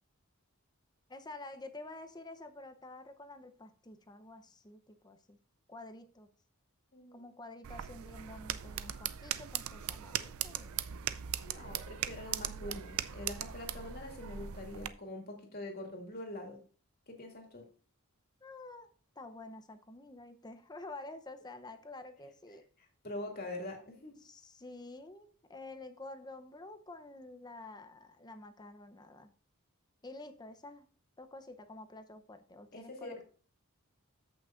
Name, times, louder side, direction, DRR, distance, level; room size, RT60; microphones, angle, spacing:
voice 1, 1.1-5.4 5.7-6.3 7.1-10.8 18.4-22.6 24.2-29.3 30.0-30.9 31.2-33.2, left 2 dB, 20° left, 8 dB, 0.7 m, -49 dB
voice 2, 6.9-7.4 11.4-16.6 17.1-17.6 23.0-24.2 32.7-33.2, left 1 dB, 45° left, 1 dB, 2.4 m, -44 dB
sound 1, 7.6-14.9, right 10 dB, 75° right, 0.5 m, -39 dB
13.5 x 6.0 x 2.5 m, 0.41 s
head